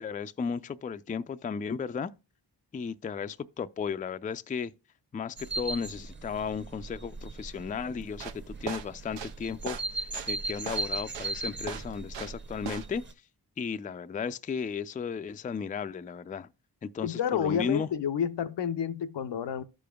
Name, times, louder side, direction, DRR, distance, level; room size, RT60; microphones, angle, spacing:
voice 1, 0.0-2.1 2.7-4.7 5.1-13.0 13.6-16.5 16.8-17.9, left 6 dB, 20° left, 0.3 m, -35 dB
sound 1, 5.4-13.1, right 3 dB, 25° right, 0.8 m, -38 dB
sound 2, 8.1-12.4 12.7-13.0, right 7 dB, 90° right, 0.6 m, -39 dB
voice 2, 17.0-19.6, left 8 dB, 75° left, 0.6 m, -30 dB
14.0 x 5.1 x 2.3 m
cardioid pair, 45°, 42 cm